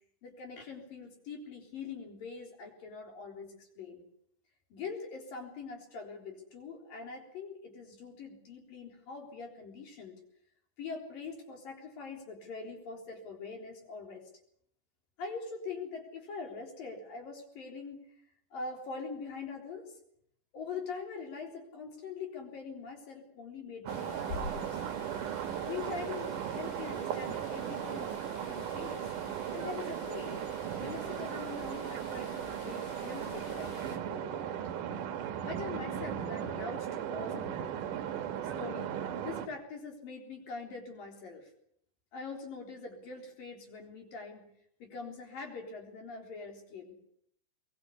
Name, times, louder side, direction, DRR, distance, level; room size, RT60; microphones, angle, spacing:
voice 1, 0.2-4.0 4.7-10.1 10.8-14.2 15.2-18.1 18.5-20.0 20.5-24.8 25.7-29.1 29.5-30.4 30.8-34.6 35.5-37.7 38.6-41.5 42.1-44.5 44.8-46.9, left 4 dB, 50° left, 2 dB, 5.3 m, -43 dB
sound 1, 23.9-34.0, left 4 dB, 85° left, 5.2 m, -48 dB
sound 2, 23.9-39.5, right 9 dB, 65° right, 2.3 m, -37 dB
22.0 x 22.0 x 8.3 m, 0.69 s
omnidirectional pair, 5.2 m